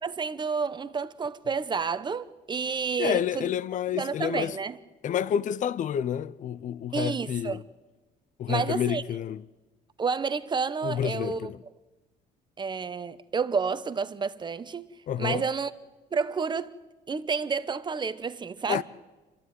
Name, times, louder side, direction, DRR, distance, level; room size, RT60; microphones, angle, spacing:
voice 1, 0.0-3.5 3.9-4.8 6.9-7.6 8.5-9.0 10.0-11.5 12.6-14.9 15.2-15.7 16.1-16.7 17.1-18.8, right 5 dB, 25° right, 1.0 m, -30 dB
voice 2, 3.0-4.6 5.0-7.6 8.4-9.4 10.8-11.6 15.1-15.4 18.7-18.8, left 9 dB, 50° left, 0.6 m, -29 dB
28.0 x 12.5 x 9.4 m
cardioid pair, 110°, 17 cm